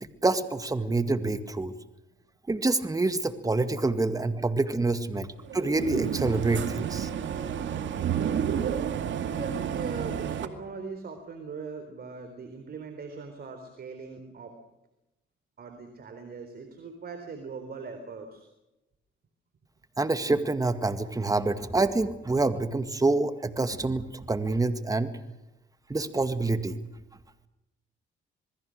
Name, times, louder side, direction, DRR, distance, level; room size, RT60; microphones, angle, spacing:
voice 1, 0.0-1.7 2.5-5.3 5.5-7.1 20.0-25.1 25.9-26.8, right 3 dB, 15° right, 10 dB, 2.0 m, -27 dB
sound 1, 5.4-10.5, right 8 dB, 70° right, 2.2 m, -30 dB
voice 2, 9.2-14.6 15.6-18.5, right 4 dB, 50° right, 6 dB, 4.0 m, -40 dB
27.5 x 21.0 x 6.6 m, 0.94 s
cardioid pair, 90°, 20 cm